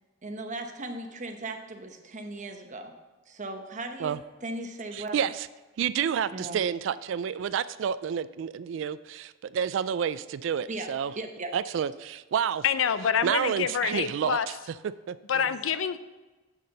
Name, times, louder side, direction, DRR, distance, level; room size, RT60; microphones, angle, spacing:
voice 1, 0.2-2.9 3.3-5.2 6.3-6.6 10.7-10.9 11.2-11.5 15.3-15.5, right 2 dB, 40° right, 5 dB, 0.9 m, -37 dB
voice 2, 4.9-5.5 5.8-11.1 11.5-12.6 13.2-14.6 15.1-15.2, right 8 dB, 70° right, 15 dB, 0.3 m, -29 dB
voice 3, 12.6-14.5 15.3-16.0, left 7 dB, 90° left, 13 dB, 0.5 m, -26 dB
7.6 x 6.6 x 5.4 m, 1.2 s
head